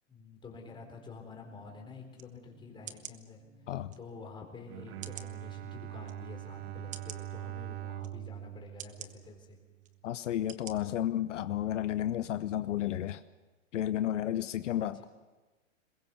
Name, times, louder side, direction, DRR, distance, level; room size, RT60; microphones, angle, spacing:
voice 1, 0.1-3.4 4.0-9.6 14.8-15.1, left 4 dB, 10° left, 2 dB, 4.0 m, -49 dB
sound 1, 0.5-7.3, right 2 dB, 40° right, 2.6 m, -59 dB
sound 2, 2.1-2.3 2.9-3.2 3.9-4.0 5.0-5.3 6.0-6.1 6.9-7.2 8.0-8.1 8.8-9.1 9.8-9.9 10.5-10.7 11.2-11.3, right 10 dB, 20° right, 1.0 m, -45 dB
voice 2, 3.7-4.0 10.0-13.2 13.7-15.0, left 12 dB, 70° left, 12 dB, 0.9 m, -32 dB
Bowed string instrument, 4.6-9.9, right 15 dB, 55° right, 0.9 m, -43 dB
22.5 x 21.5 x 7.1 m, 1.2 s
hypercardioid pair, 135°, 38 cm